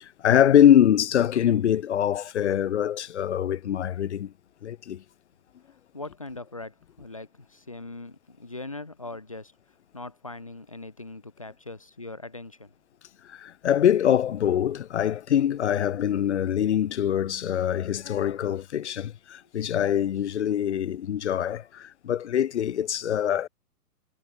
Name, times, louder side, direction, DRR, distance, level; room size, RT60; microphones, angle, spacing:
voice 1, 0.0-4.3 4.6-5.0 13.2-23.5, left 10 dB, 45° left, 0.8 m, -23 dB
voice 2, 5.9-9.5 9.9-12.7, left 2 dB, 25° left, 0.4 m, -40 dB
figure-of-eight pair, 120°, 47 cm